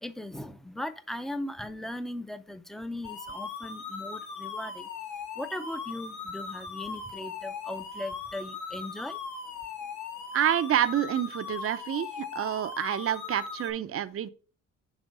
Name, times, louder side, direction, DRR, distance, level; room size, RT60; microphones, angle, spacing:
voice 1, 0.0-4.9 5.4-9.2, left 1 dB, ahead, 0.5 m, -38 dB
sound 1, 3.0-13.7, left 5 dB, 75° left, 1.4 m, -39 dB
voice 2, 10.3-14.3, right 10 dB, 50° right, 0.6 m, -28 dB
6.1 x 3.5 x 5.3 m
cardioid pair, 90°, 30 cm